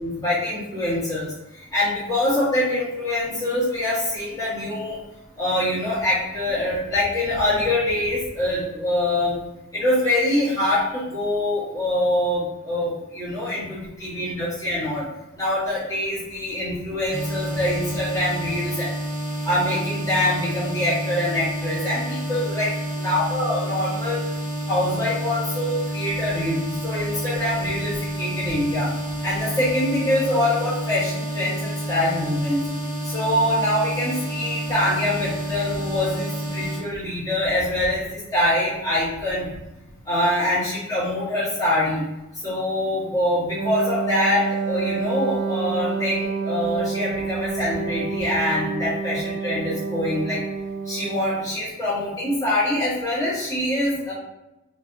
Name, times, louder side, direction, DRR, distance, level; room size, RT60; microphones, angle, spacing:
voice 1, 0.0-5.0 5.4-9.4 9.7-15.0 15.3-18.9 19.4-22.7 23.0-24.2 24.7-28.9 29.2-32.6 33.0-39.5 40.0-42.0 42.4-50.4 50.8-54.1, left 1 dB, 15° left, -12 dB, 1.3 m, -24 dB
sound 1, 17.1-36.8, equal, 25° right, 1.5 m, -29 dB
Wind instrument woodwind instrument, 43.5-51.6, right 5 dB, 75° right, 0.3 m, -28 dB
3.3 x 2.6 x 2.6 m, 0.97 s
head